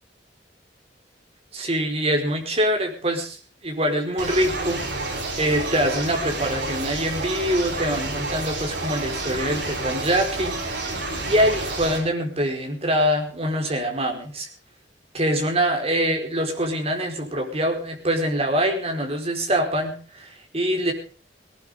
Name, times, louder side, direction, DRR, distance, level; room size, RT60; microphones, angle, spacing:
voice 1, 1.5-3.4 3.6-4.8 5.4-11.0 11.3-14.5 15.1-20.9, equal, 35° right, 3 dB, 4.8 m, -24 dB
sound 1, 4.2-12.0, right 2 dB, 75° right, 7.4 m, -29 dB
18.5 x 18.5 x 3.7 m, 0.39 s
head